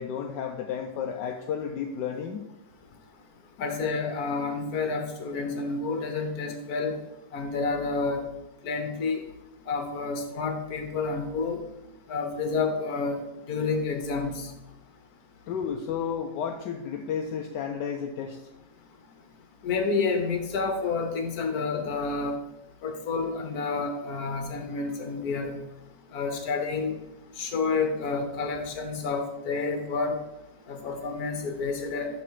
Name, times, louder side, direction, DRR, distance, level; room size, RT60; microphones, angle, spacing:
voice 1, 0.0-2.5 15.5-18.4, left 7 dB, 80° left, 3 dB, 1.2 m, -32 dB
voice 2, 3.6-7.0 7.3-8.2 8.6-9.3 9.7-11.6 12.1-13.2 13.5-14.5 19.6-22.4 22.8-25.6 26.1-27.0 27.4-30.2 30.7-32.1, left 4 dB, 60° left, 5 dB, 1.6 m, -29 dB
12.0 x 4.0 x 4.7 m, 0.92 s
omnidirectional pair, 1.9 m